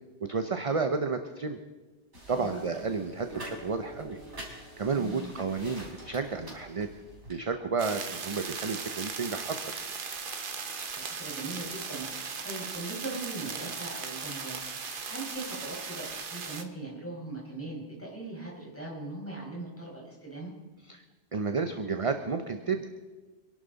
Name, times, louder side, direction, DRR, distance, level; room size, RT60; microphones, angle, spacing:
voice 1, 0.3-1.6 2.3-4.2 4.5-6.9 7.3-9.9 20.9-21.0 21.3-22.9, right 4 dB, 35° right, 7 dB, 0.7 m, -31 dB
sound 1, 2.1-7.4, right 1 dB, 80° right, 4.4 m, -47 dB
voice 2, 2.2-2.7 4.9-5.3 10.9-14.6 14.8-20.5, right 2 dB, 10° left, -4 dB, 5.1 m, -40 dB
sound 2, 3.3-9.8, left 2 dB, 85° left, 2.3 m, -53 dB
sound 3, 7.8-16.6, right 5 dB, 50° right, 1.1 m, -38 dB
26.0 x 11.5 x 4.0 m, 1.3 s
omnidirectional pair, 1.2 m